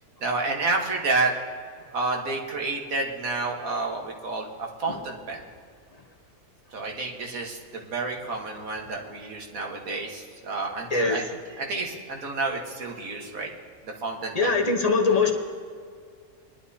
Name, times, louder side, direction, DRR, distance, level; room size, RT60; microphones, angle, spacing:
voice 1, 0.2-1.3 1.9-5.4 6.7-11.2 11.6-13.5 13.8-14.5, right 3 dB, 70° right, 1 dB, 1.8 m, -30 dB
voice 2, 10.9-11.2 14.3-15.3, left 4 dB, 30° left, 2 dB, 1.0 m, -22 dB
21.5 x 11.5 x 2.8 m, 2.1 s
omnidirectional pair, 1.5 m